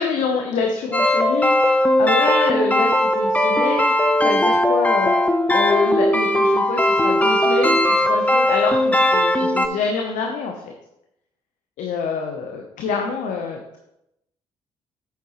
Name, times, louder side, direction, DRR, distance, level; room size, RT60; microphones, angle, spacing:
voice 1, 0.0-3.9 4.2-10.7 11.8-13.8, left 5 dB, 65° left, 3 dB, 1.0 m, -26 dB
sound 1, 0.9-9.7, left 1 dB, 10° left, 0.9 m, -18 dB
9.3 x 7.0 x 3.1 m, 0.85 s
figure-of-eight pair, 45°, 14 cm